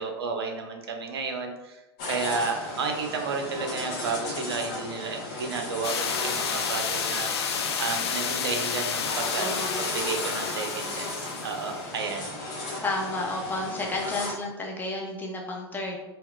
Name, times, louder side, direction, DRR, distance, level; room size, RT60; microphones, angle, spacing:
voice 1, 0.0-7.3 7.8-12.3, right 4 dB, 65° right, 4 dB, 0.5 m, -32 dB
sound 1, 2.0-14.3, left 2 dB, 50° left, 0.9 m, -35 dB
sound 2, 5.8-11.7, left 6 dB, 70° left, 0.4 m, -30 dB
voice 2, 9.3-9.8 12.8-16.0, left 2 dB, 15° left, -1 dB, 0.5 m, -31 dB
3.6 x 2.2 x 2.3 m, 1.0 s
figure-of-eight pair, 100°, 14 cm